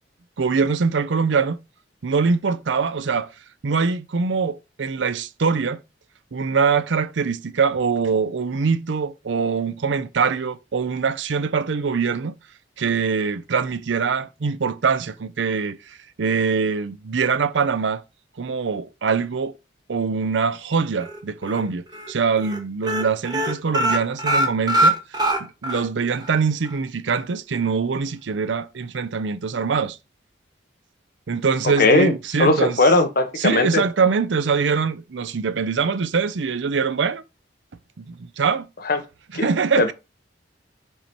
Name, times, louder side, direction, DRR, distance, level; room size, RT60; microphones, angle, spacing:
voice 1, 0.4-1.6 2.0-3.3 3.6-5.8 6.3-12.4 12.8-18.0 18.4-19.6 19.9-25.0 25.4-30.0 31.3-32.8 33.4-37.2 38.0-38.7 39.3-39.9, right 5 dB, 80° right, 0.5 m, -23 dB
sound 1, 21.0-21.6 21.9-22.1 22.4-22.6 22.8-25.8 26.2-26.3 26.7-26.8, right 1 dB, 25° right, 1.3 m, -22 dB
voice 2, 31.8-32.1 32.4-33.8 38.9-39.0 39.3-39.4 39.8-39.9, left 2 dB, 55° left, 1.1 m, -18 dB
5.5 x 4.5 x 4.3 m
head